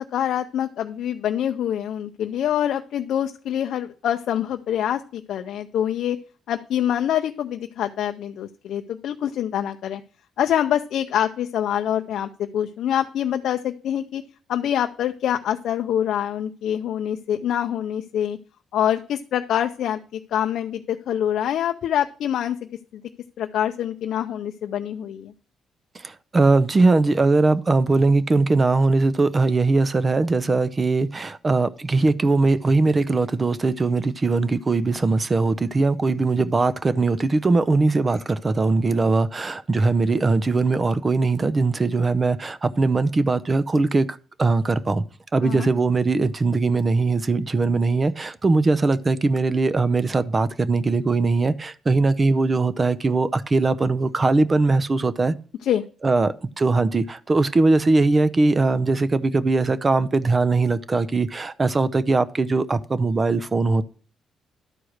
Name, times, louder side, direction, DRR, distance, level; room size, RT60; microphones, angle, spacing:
voice 1, 0.1-6.2 6.5-10.0 10.4-14.2 14.5-18.4 18.7-22.6 22.9-23.0 23.4-25.3 45.4-45.7 55.6-55.8, left 10 dB, 75° left, 0.5 m, -25 dB
voice 2, 25.9-45.0 45.3-55.3 56.0-63.8, right 3 dB, 30° right, 0.6 m, -20 dB
11.5 x 4.7 x 6.4 m
cardioid pair, 95°, 0 cm